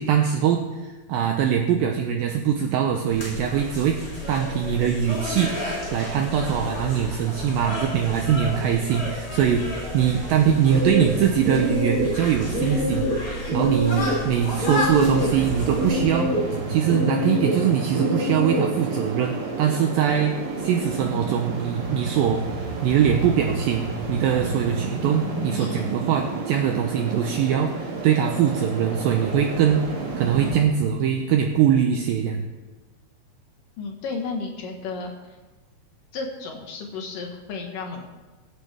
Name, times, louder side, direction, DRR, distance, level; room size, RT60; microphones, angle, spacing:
voice 1, 0.0-4.0 4.3-13.1 13.5-16.3 16.7-29.8 30.2-32.4, right 8 dB, 80° right, 4 dB, 2.1 m, -22 dB
sound 1, 3.1-16.0, left 1 dB, 30° left, 5.2 m, -32 dB
sound 2, 10.7-18.9, equal, 40° right, 1.3 m, -26 dB
sound 3, 15.0-30.6, right 4 dB, 55° right, 3.7 m, -31 dB
voice 2, 25.6-25.9 33.8-35.4 36.1-38.0, left 4 dB, 65° left, 2 dB, 2.5 m, -33 dB
22.5 x 8.4 x 3.4 m, 1.2 s
omnidirectional pair, 4.8 m